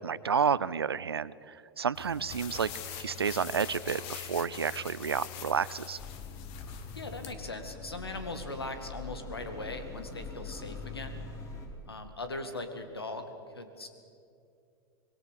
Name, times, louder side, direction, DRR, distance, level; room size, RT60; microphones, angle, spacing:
voice 1, 0.0-2.7 3.0-6.0, right 6 dB, 85° right, 19 dB, 0.6 m, -30 dB
sound 1, 1.9-7.3, left 9 dB, 45° left, 2.0 m, -43 dB
sound 2, 6.0-11.7, left 3 dB, 25° left, 4.6 m, -43 dB
voice 2, 6.9-11.2 11.9-13.3 13.5-13.9, left 2 dB, 85° left, 8 dB, 2.1 m, -39 dB
25.5 x 21.0 x 6.5 m, 2.5 s
figure-of-eight pair, 95°, 13 cm